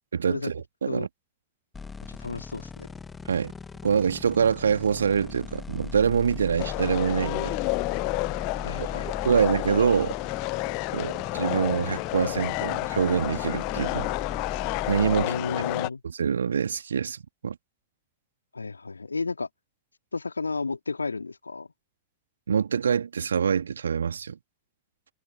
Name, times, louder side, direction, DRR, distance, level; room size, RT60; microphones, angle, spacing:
voice 1, 0.1-1.1 3.3-3.5 3.8-7.5 8.8-8.9 9.2-10.2 10.9-14.1 14.9-15.3 16.0-17.6 22.5-24.4, right 7 dB, 70° right, 2.2 m, -25 dB
sound 1, 1.7-15.3, left 5 dB, 15° left, 1.3 m, -39 dB
voice 2, 2.1-2.9 8.6-9.2 11.0-11.1 15.1-16.0 18.5-19.5 20.1-21.7, left 4 dB, 80° left, 2.5 m, -33 dB
sound 2, 6.6-15.9, left 40 dB or more, 45° left, 0.6 m, -30 dB
figure-of-eight pair, 90°, 0 cm